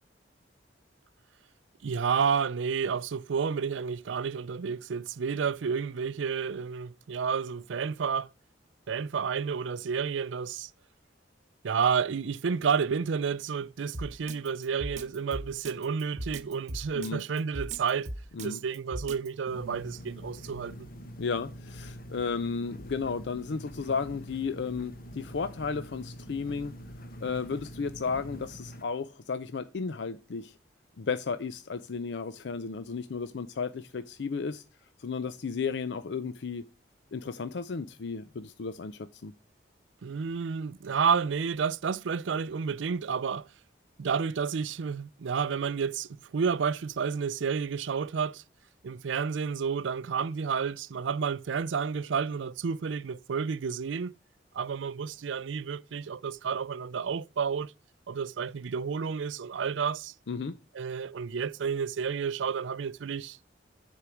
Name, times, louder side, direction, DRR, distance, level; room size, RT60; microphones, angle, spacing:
voice 1, 1.8-8.3 8.9-10.7 11.6-18.1 18.4-20.9 40.0-43.5 44.0-48.4 48.8-54.1 54.5-57.7 58.1-60.1 60.7-63.4, right 6 dB, 85° right, 0.4 m, -30 dB
Drum kit, 13.9-19.3, right 1 dB, 40° right, 1.0 m, -38 dB
voice 2, 16.9-17.3 18.3-18.6 21.2-26.7 27.2-30.6 31.0-34.6 35.0-36.6 37.1-39.3 60.3-60.6, left 5 dB, 70° left, 0.5 m, -34 dB
sound 1, 19.5-28.8, equal, 50° left, 1.1 m, -45 dB
10.0 x 4.6 x 4.9 m
head